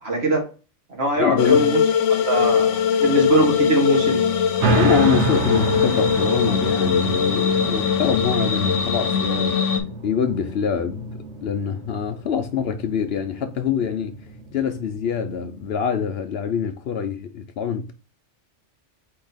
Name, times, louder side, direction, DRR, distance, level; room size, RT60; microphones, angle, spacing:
voice 1, 0.0-0.4 0.9-1.8 2.1-4.2, right 2 dB, 60° right, 1.8 m, -22 dB
voice 2, 1.2-1.7 4.7-9.6 10.0-14.2 14.5-17.9, left 7 dB, 65° left, 0.8 m, -25 dB
sound 1, 1.4-9.8, left 7 dB, 85° left, 1.0 m, -21 dB
sound 2, 4.6-15.7, right 3 dB, 75° right, 1.1 m, -29 dB
4.6 x 2.8 x 4.0 m
omnidirectional pair, 1.2 m